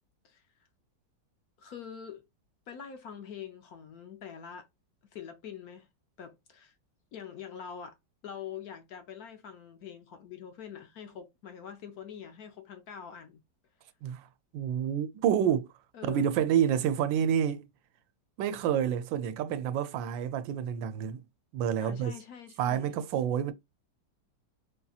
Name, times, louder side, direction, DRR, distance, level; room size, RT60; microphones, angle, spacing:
voice 1, 1.6-2.2 2.7-4.7 5.1-5.9 6.2-6.7 7.1-8.0 8.2-13.4 15.9-16.3 21.8-22.9, left 8 dB, 65° left, 1.0 m, -44 dB
voice 2, 14.5-15.7 16.0-17.7 18.4-21.2 21.5-22.1 22.6-23.5, right 9 dB, 85° right, 1.3 m, -28 dB
4.4 x 2.7 x 2.3 m
omnidirectional pair, 2.0 m